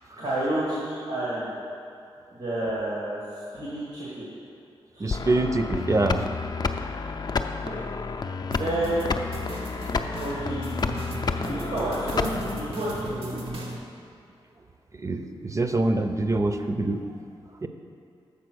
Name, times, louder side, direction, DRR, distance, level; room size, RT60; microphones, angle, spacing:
voice 1, 0.2-1.5 2.3-3.2 3.5-4.3 4.9-5.2 7.5-7.8 8.5-9.1 10.2-10.7 11.2-13.4, right 1 dB, 85° right, -9 dB, 1.9 m, -30 dB
voice 2, 5.0-6.3 15.0-17.0 17.6-17.7, right 2 dB, 30° right, 7 dB, 0.5 m, -25 dB
sound 1, 5.1-12.7, left 4 dB, 45° left, 0.4 m, -30 dB
sound 2, 8.5-13.8, right 1 dB, 70° right, 1.1 m, -37 dB
6.9 x 4.6 x 6.2 m, 2.4 s
cardioid pair, 65°, 10 cm